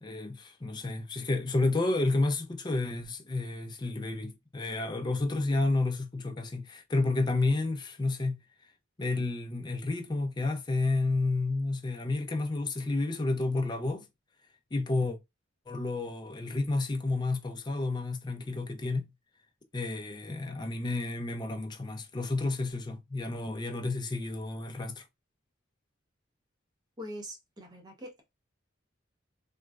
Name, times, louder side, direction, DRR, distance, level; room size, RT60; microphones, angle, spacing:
voice 1, 0.0-8.4 9.0-14.1 14.7-15.2 15.7-19.0 19.7-25.0, left 2 dB, 20° left, 0.4 m, -30 dB
voice 2, 27.0-28.3, equal, 20° right, 0.7 m, -43 dB
3.0 x 2.3 x 2.3 m
head